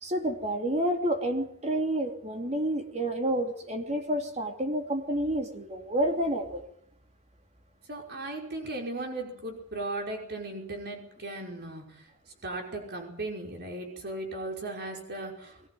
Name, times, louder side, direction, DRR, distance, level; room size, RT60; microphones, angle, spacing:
voice 1, 0.0-6.6, right 1 dB, 30° right, 5 dB, 3.0 m, -29 dB
voice 2, 7.9-12.1 12.4-15.7, right 2 dB, 50° right, 2 dB, 5.4 m, -37 dB
22.0 x 18.5 x 9.3 m, 0.70 s
head